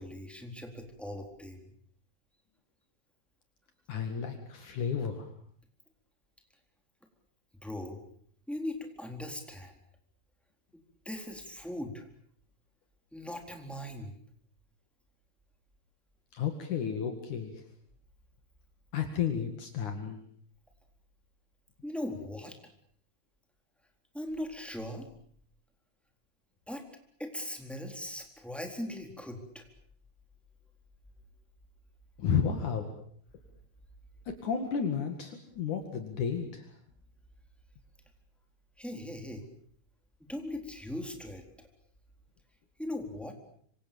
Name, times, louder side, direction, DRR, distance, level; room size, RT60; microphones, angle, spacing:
voice 1, 0.0-1.7 7.6-8.0 8.5-9.7 11.1-12.0 13.1-14.1 21.8-22.6 24.1-25.1 26.7-26.8 27.2-29.7 38.8-39.4 40.3-41.4 42.8-43.3, left 1 dB, ahead, 3 dB, 3.6 m, -39 dB
voice 2, 3.9-5.3 16.3-17.6 18.9-20.2 32.2-32.9 34.3-36.7, left 7 dB, 65° left, 5 dB, 3.5 m, -32 dB
26.0 x 26.0 x 7.0 m, 0.62 s
omnidirectional pair, 3.8 m